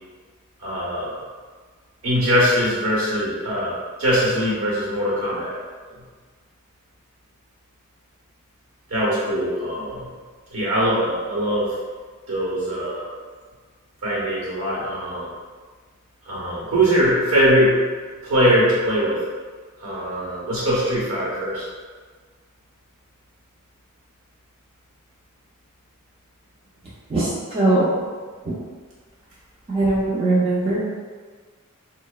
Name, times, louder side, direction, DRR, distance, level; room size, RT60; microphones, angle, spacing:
voice 1, 0.6-1.1 2.0-5.6 8.9-10.1 10.5-11.7 12.3-13.1 14.0-15.3 16.3-17.8 18.2-19.2 19.8-21.7, equal, 70° right, -6 dB, 0.9 m, -21 dB
voice 2, 27.1-27.9 29.7-30.8, right 2 dB, 25° right, -8 dB, 0.4 m, -20 dB
2.9 x 2.0 x 2.2 m, 1.5 s
head